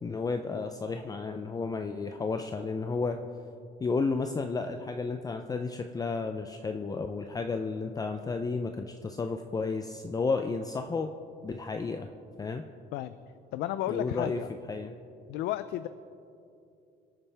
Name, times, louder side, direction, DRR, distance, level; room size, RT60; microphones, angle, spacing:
voice 1, 0.0-3.2 3.8-11.1 11.4-12.1 12.4-12.6 13.9-14.4 14.7-14.9, left 4 dB, 20° left, 6 dB, 0.5 m, -32 dB
voice 2, 13.5-14.5 15.3-15.9, left 13 dB, 85° left, 12 dB, 0.4 m, -32 dB
26.5 x 8.9 x 3.4 m, 2.7 s
cardioid pair, 110°, 17 cm